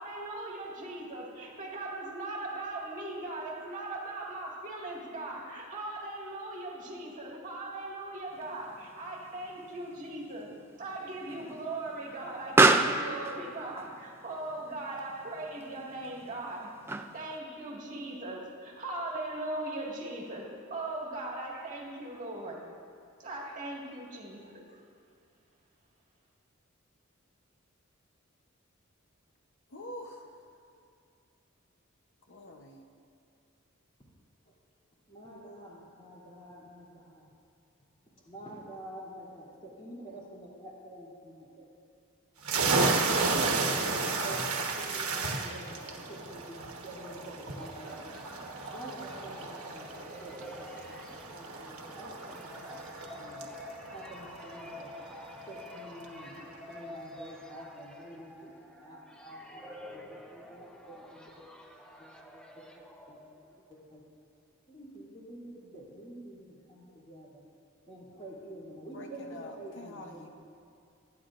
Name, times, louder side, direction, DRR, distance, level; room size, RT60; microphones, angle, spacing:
voice 1, 0.0-10.5 10.8-16.7 17.1-22.6 23.2-24.8, right 2 dB, 40° right, -3 dB, 1.8 m, -39 dB
Explosion, 8.4-17.4, right 3 dB, 10° right, 0.4 m, -31 dB
voice 2, 29.7-30.2 32.3-32.8 68.9-70.3, left 1 dB, 60° left, 3 dB, 0.8 m, -45 dB
voice 3, 35.1-37.2 38.2-41.7 42.9-44.4 44.8-48.0 48.7-51.0 51.3-53.5 53.9-54.9 55.5-58.3 58.8-61.5 62.0-62.4 63.1-63.2 63.7-64.0 64.7-67.4 67.9-70.3, right 1 dB, 25° left, -6 dB, 2.7 m, -47 dB
sound 1, 42.4-55.8, right 3 dB, 80° right, 1.2 m, -33 dB
sound 2, 46.7-63.7, left 1 dB, 5° left, 0.7 m, -49 dB
24.0 x 9.7 x 2.5 m, 2.5 s
head